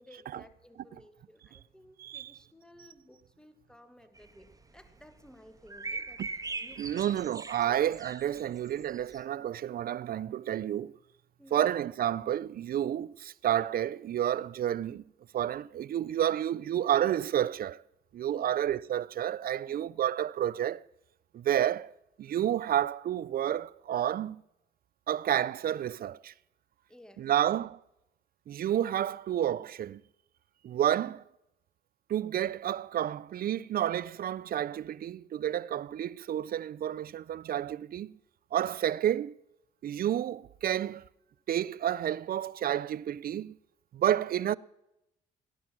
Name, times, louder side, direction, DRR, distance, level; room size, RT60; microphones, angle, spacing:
voice 1, 0.0-7.3 7.6-7.9 11.4-11.7 18.3-18.6 19.7-19.9 26.9-27.3, left 1 dB, 5° left, 1.7 m, -55 dB
voice 2, 2.0-2.3 6.2-6.3 6.8-10.9 11.5-15.0 15.3-17.8 18.1-20.8 21.3-24.4 25.1-26.3 27.2-27.8 28.5-30.0 30.6-31.2 32.1-38.1 38.5-39.4 39.8-41.0 41.5-43.5 43.9-44.6, right 11 dB, 55° right, 0.5 m, -30 dB
sound 1, 4.2-4.9 5.7-9.2, right 3 dB, 20° right, 1.5 m, -40 dB
17.5 x 11.0 x 6.1 m
supercardioid pair, 65°, 19 cm